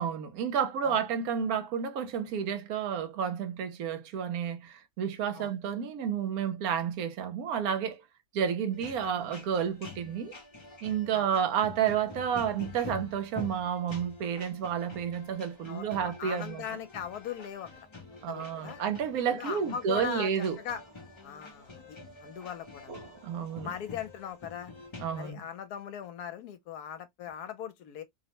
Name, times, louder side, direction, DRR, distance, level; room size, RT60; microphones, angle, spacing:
voice 1, 0.0-8.0 8.3-10.3 10.8-16.6 18.2-20.6 23.2-23.7 25.0-25.4, right 8 dB, 75° right, 1.0 m, -31 dB
sound 1, 8.7-25.3, left 4 dB, 40° left, 0.4 m, -47 dB
voice 2, 15.7-17.9 18.1-18.8 19.3-20.3 20.6-20.8 21.2-23.0 23.6-24.7 25.2-28.0, left 8 dB, 80° left, 1.1 m, -39 dB
sound 2, 19.5-24.5, right 3 dB, 45° right, 1.1 m, -55 dB
2.7 x 2.1 x 2.8 m
omnidirectional pair, 1.6 m